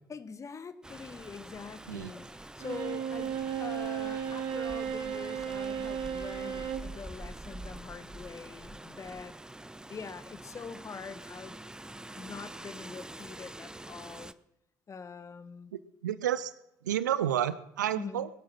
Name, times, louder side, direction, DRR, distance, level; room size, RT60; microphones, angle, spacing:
voice 1, 0.1-9.4 9.9-11.6 12.1-14.3 14.9-15.7 17.9-18.3, left 5 dB, 30° left, 12 dB, 1.4 m, -44 dB
Rain, 0.8-14.3, right 1 dB, 5° right, 0.8 m, -46 dB
Bowed string instrument, 2.6-6.9, right 8 dB, 50° right, 1.7 m, -34 dB
voice 2, 15.7-16.5 16.8-18.3, right 11 dB, 75° right, 16 dB, 0.7 m, -30 dB
21.5 x 11.0 x 5.9 m, 0.85 s
figure-of-eight pair, 50°, 10 cm